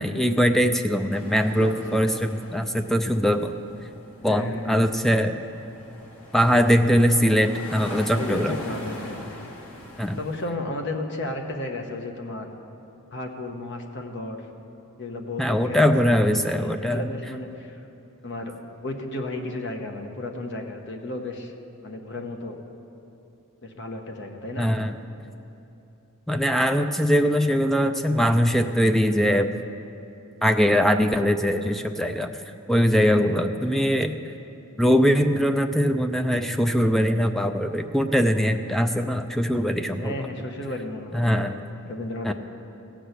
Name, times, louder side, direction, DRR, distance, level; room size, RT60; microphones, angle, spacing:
voice 1, 0.0-3.5 4.2-5.3 6.3-8.6 10.0-10.2 15.4-17.1 24.6-25.0 26.3-29.6 30.4-32.3 32.7-34.2 34.8-40.1 41.1-41.5 42.2-42.3, equal, ahead, 7 dB, 0.4 m, -21 dB
sound 1, 1.1-10.5, left 1 dB, 80° left, 2.1 m, -41 dB
voice 2, 1.1-2.2 4.2-4.9 8.2-9.2 10.2-12.5 13.1-14.4 15.0-17.8 18.2-18.5 18.8-21.5 21.8-22.6 23.6-24.7 33.1-33.6 39.9-42.3, left 2 dB, 55° left, 3 dB, 1.2 m, -34 dB
16.0 x 6.2 x 8.3 m, 2.8 s
head